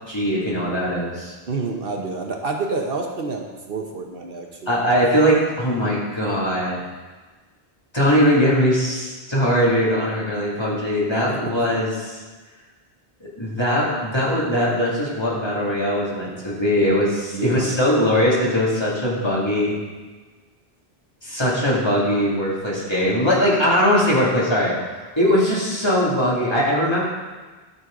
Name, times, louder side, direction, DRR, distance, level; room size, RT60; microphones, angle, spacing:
voice 1, 0.1-1.3 4.7-6.9 7.9-12.2 13.4-19.8 21.2-24.7 25.2-27.0, equal, 25° left, -6 dB, 2.4 m, -20 dB
voice 2, 1.5-4.8 17.3-17.6, right 3 dB, 65° right, 2 dB, 1.1 m, -28 dB
13.0 x 6.2 x 3.8 m, 1.3 s
omnidirectional pair, 1.1 m